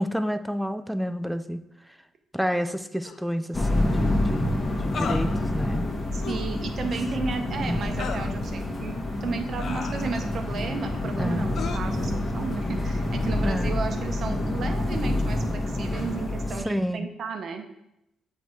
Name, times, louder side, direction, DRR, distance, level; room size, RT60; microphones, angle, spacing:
voice 1, 0.0-1.6 2.3-5.9 7.6-7.8 11.2-11.5 13.4-13.7 16.6-17.1, equal, ahead, 9 dB, 0.4 m, -29 dB
sound 1, 3.0-3.2 4.9-5.3 6.2-6.6 8.0-8.3 9.6-10.4 11.5-11.8, left 5 dB, 60° left, 0.6 m, -34 dB
sound 2, 3.5-16.6, left 1 dB, 25° left, 1.2 m, -27 dB
voice 2, 6.1-17.7, right 5 dB, 55° right, 5 dB, 0.8 m, -34 dB
7.4 x 2.8 x 4.6 m, 0.84 s
cardioid pair, 90°, 0 cm